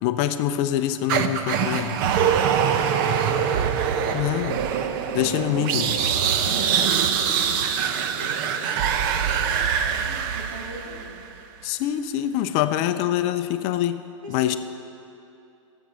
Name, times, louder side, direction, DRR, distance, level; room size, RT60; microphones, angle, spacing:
voice 1, 0.0-2.0 4.1-4.6 5.1-6.0 11.6-14.6, left 12 dB, 35° left, 10 dB, 0.5 m, -25 dB
sound 1, 1.1-11.3, right 7 dB, 40° right, 0.7 m, -23 dB
voice 2, 6.4-11.1 14.2-14.6, right 1 dB, 90° right, -3 dB, 3.3 m, -41 dB
13.0 x 7.5 x 7.6 m, 2.7 s
hypercardioid pair, 145°, 17 cm